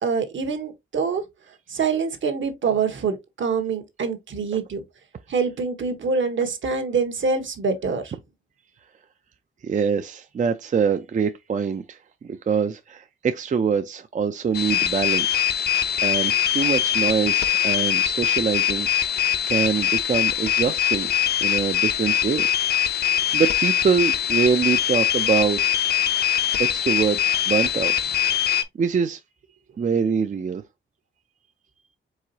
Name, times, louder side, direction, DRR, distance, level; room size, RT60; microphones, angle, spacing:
voice 1, 0.0-1.2 1.7-4.8 5.3-8.1, right 5 dB, 65° right, 1.2 m, -25 dB
voice 2, 9.6-12.0 12.2-15.5 16.0-21.1 21.4-22.5 23.3-25.8 26.6-27.2 27.5-28.0 28.5-29.2 29.8-30.6, right 6 dB, 35° right, 0.4 m, -24 dB
sound 1, 14.5-28.6, left 11 dB, 50° left, 0.6 m, -22 dB
4.7 x 3.8 x 2.7 m
wide cardioid pair, 110°, 21 cm